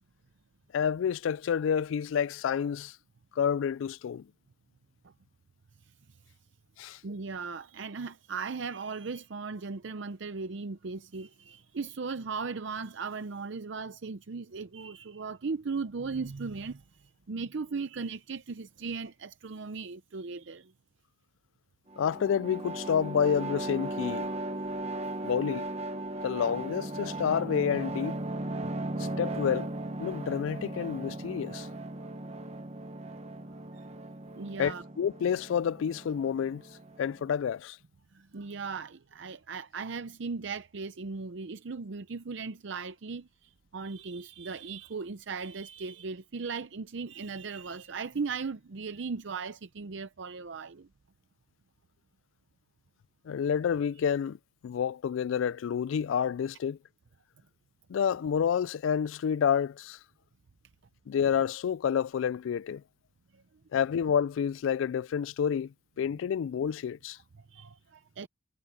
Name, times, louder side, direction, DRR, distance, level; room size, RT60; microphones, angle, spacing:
voice 1, 0.7-3.0 3.4-4.3 6.8-7.0 22.0-24.3 25.2-25.7 26.2-28.2 29.0-29.7 30.0-31.7 34.6-36.6 37.0-37.8 53.2-54.4 54.6-56.8 57.9-60.0 61.1-62.8 63.7-67.2, left 7 dB, 75° left, 0.3 m, -29 dB
voice 2, 7.0-20.7 33.7-33.9 34.3-34.8 38.1-50.9 63.3-63.4 67.4-68.3, right 4 dB, 65° right, 0.6 m, -37 dB
sound 1, 21.9-37.3, right 2 dB, 30° right, 1.2 m, -37 dB
head